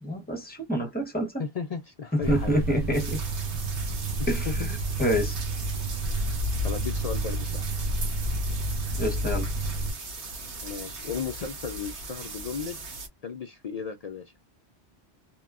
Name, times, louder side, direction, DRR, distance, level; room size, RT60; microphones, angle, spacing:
voice 1, 0.0-1.4 2.3-3.2 4.3-5.4 9.0-9.5, equal, 10° left, 0.8 m, -28 dB
voice 2, 1.4-2.5 4.2-4.7 6.6-7.6 10.6-12.8 13.2-14.2, left 5 dB, 60° left, 0.4 m, -35 dB
sound 1, 2.2-9.9, right 1 dB, 60° right, 0.8 m, -30 dB
sound 2, 2.9-13.1, right 3 dB, 80° right, 1.3 m, -39 dB
2.9 x 2.2 x 2.3 m
omnidirectional pair, 1.1 m